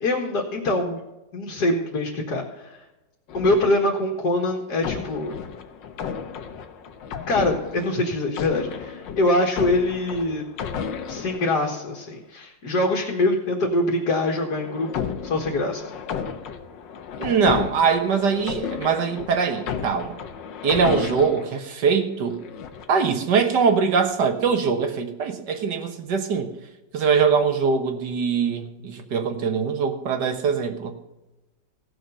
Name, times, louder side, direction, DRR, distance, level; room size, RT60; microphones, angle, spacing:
voice 1, 0.0-1.0 1.3-2.8 3.3-5.4 7.3-10.4 11.1-15.9, left 2 dB, 60° left, 0 dB, 2.1 m, -24 dB
sound 1, 3.3-4.2 4.8-12.1 14.0-21.6 22.2-23.0, left 7 dB, 80° left, 1.6 m, -33 dB
voice 2, 17.2-20.2 20.6-22.4 22.9-26.5 26.9-30.9, right 5 dB, 65° right, 6 dB, 1.9 m, -22 dB
17.0 x 6.8 x 5.5 m, 1.0 s
omnidirectional pair, 2.0 m